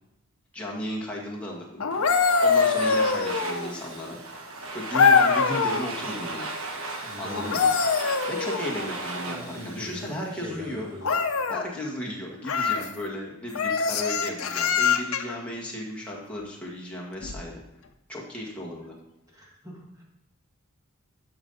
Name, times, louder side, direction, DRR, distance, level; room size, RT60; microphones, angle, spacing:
voice 1, 0.5-1.9 2.4-4.2 4.7-6.5 7.2-7.7 8.3-10.9 11.5-17.6 18.1-18.9, left 1 dB, 5° left, -4 dB, 1.7 m, -35 dB
sound 1, 1.8-3.8 4.9-5.9 7.3-8.9 11.0-11.6 12.4-12.9 13.5-15.4 17.2-17.4, left 5 dB, 75° left, 0.7 m, -23 dB
Domestic sounds home sounds, 1.9-10.8, right 2 dB, 75° right, 1.3 m, -36 dB
voice 2, 7.0-7.6 9.2-11.2 19.3-20.0, equal, 15° right, -3 dB, 1.9 m, -41 dB
11.5 x 5.6 x 4.0 m, 0.86 s
head